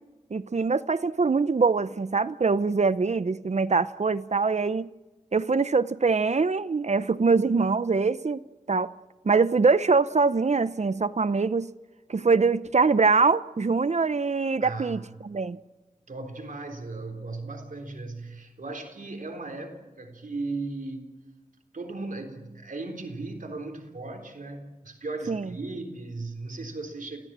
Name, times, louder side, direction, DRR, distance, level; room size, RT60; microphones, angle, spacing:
voice 1, 0.3-4.9 5.3-8.4 8.7-8.9 9.2-11.7 12.1-15.6 25.3-25.5, right 4 dB, 60° right, 0.7 m, -23 dB
voice 2, 14.6-15.1 16.1-21.1 21.7-27.2, right 3 dB, 80° right, 3.8 m, -37 dB
28.5 x 17.0 x 7.5 m
wide cardioid pair, 80°, 13 cm